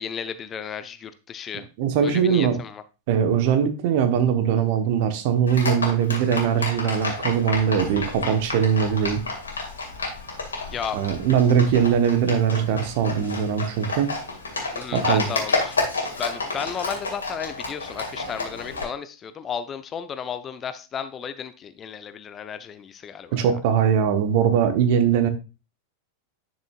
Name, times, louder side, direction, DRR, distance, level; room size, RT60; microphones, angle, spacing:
voice 1, 0.0-1.7 2.0-2.8 10.7-11.0 14.7-23.5, left 7 dB, 25° left, 11 dB, 0.6 m, -34 dB
voice 2, 1.8-2.6 3.1-9.2 10.9-14.1 14.9-15.3 23.3-25.3, right 8 dB, 50° right, 8 dB, 1.1 m, -21 dB
Livestock farm animals working animals, 5.5-18.8, left 3 dB, 75° left, 2.3 m, -30 dB
10.5 x 6.4 x 2.4 m, 0.30 s
figure-of-eight pair, 90°, 0 cm